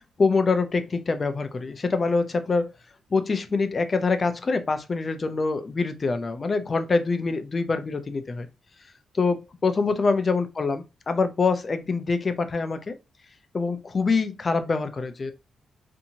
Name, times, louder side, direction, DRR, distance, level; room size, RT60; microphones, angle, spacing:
voice 1, 0.0-2.7 3.1-8.5 9.1-12.9 13.5-15.3, left 4 dB, 30° left, 0.3 m, -25 dB
2.7 x 2.6 x 2.6 m
cardioid pair, 130°, 0 cm